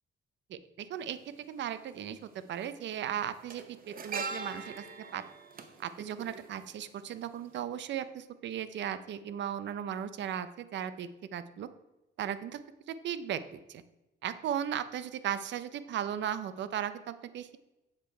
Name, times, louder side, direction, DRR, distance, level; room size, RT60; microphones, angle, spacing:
voice 1, 0.5-1.2 1.5-2.2 2.5-4.8 5.1-5.2 5.8-11.7 12.2-12.6 12.9-13.8 14.2-17.6, right 9 dB, 65° right, 13 dB, 0.6 m, -36 dB
sound 1, 1.0-1.1 2.3-2.6 2.8-7.1 7.4-7.6, right 4 dB, 45° right, 0.9 m, -42 dB
7.4 x 6.5 x 4.4 m, 1.0 s
cardioid pair, 90°, 20 cm